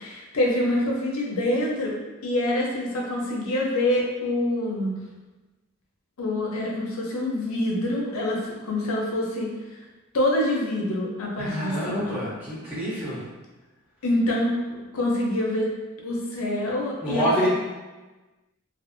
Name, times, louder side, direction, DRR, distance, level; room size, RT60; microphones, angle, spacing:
voice 1, 0.0-2.0 2.2-5.0 6.2-9.5 10.1-12.2 14.0-15.7 16.0-17.5, left 1 dB, 70° left, -2 dB, 0.6 m, -26 dB
voice 2, 11.4-13.3 17.0-17.5, equal, 5° right, -10 dB, 0.7 m, -27 dB
2.5 x 2.4 x 2.5 m, 1.2 s
head